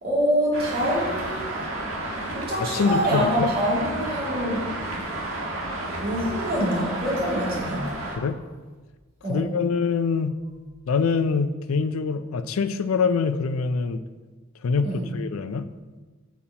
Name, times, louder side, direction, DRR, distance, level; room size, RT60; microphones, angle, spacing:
voice 1, 0.0-1.4 2.3-4.7 6.0-7.8 9.2-9.4 14.8-15.0, equal, 45° right, -6 dB, 2.5 m, -25 dB
Traffic noise roadway noise, 0.5-8.2, right 1 dB, 80° right, 1.6 m, -31 dB
voice 2, 2.6-3.5 8.2-8.4 9.3-10.4 10.9-14.0 14.6-15.7, left 5 dB, 90° left, 12 dB, 0.4 m, -24 dB
8.4 x 7.1 x 2.9 m, 1.3 s
head